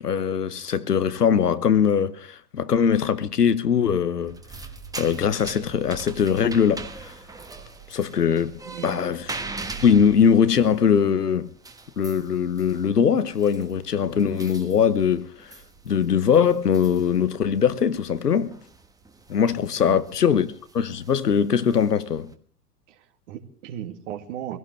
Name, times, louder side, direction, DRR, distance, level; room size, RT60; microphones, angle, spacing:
voice 1, 0.0-4.4 5.0-7.1 7.9-8.5 8.8-9.4 9.8-11.5 12.0-15.5 15.8-18.6 19.3-22.3, left 7 dB, 80° left, 1.1 m, -21 dB
sound 1, 4.2-22.3, right 3 dB, 10° right, 1.3 m, -42 dB
voice 2, 8.6-9.0 19.8-20.0 22.9-24.6, right 11 dB, 50° right, 2.3 m, -36 dB
24.0 x 16.5 x 3.3 m
figure-of-eight pair, 100°, 46 cm